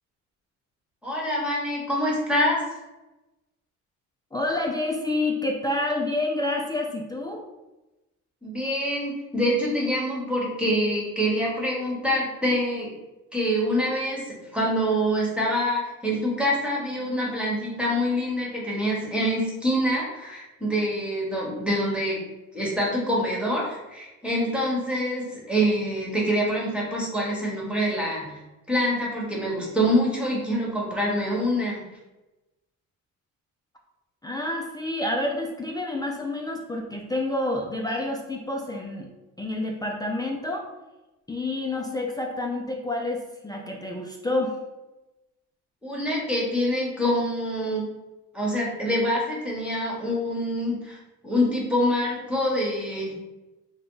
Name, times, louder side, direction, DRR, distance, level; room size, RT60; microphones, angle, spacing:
voice 1, 1.0-2.6 8.4-12.9 13.3-22.2 22.5-28.4 28.7-31.8 45.8-47.8 48.3-51.0 51.2-53.1, equal, 5° right, -4 dB, 1.2 m, -25 dB
voice 2, 4.3-7.4 34.2-39.1 39.4-40.7 41.3-44.6, left 2 dB, 15° left, 0 dB, 0.3 m, -28 dB
3.7 x 2.2 x 3.7 m, 1.0 s
cardioid pair, 105°, 33 cm